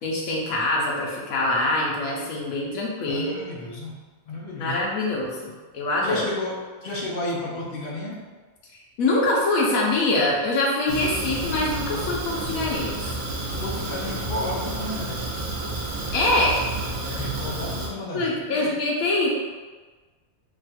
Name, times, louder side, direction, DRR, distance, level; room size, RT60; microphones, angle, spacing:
voice 1, 0.0-3.4 4.6-6.2 9.0-13.1 16.1-16.6 18.1-19.3, left 2 dB, 80° left, -3 dB, 1.3 m, -24 dB
voice 2, 3.1-4.0 4.3-4.8 6.0-8.3 13.6-15.3 17.0-18.8, left 2 dB, 55° left, -3 dB, 0.7 m, -32 dB
Fire, 10.9-17.9, right 2 dB, 85° right, 1.2 m, -30 dB
3.4 x 2.3 x 4.1 m, 1.3 s
omnidirectional pair, 1.4 m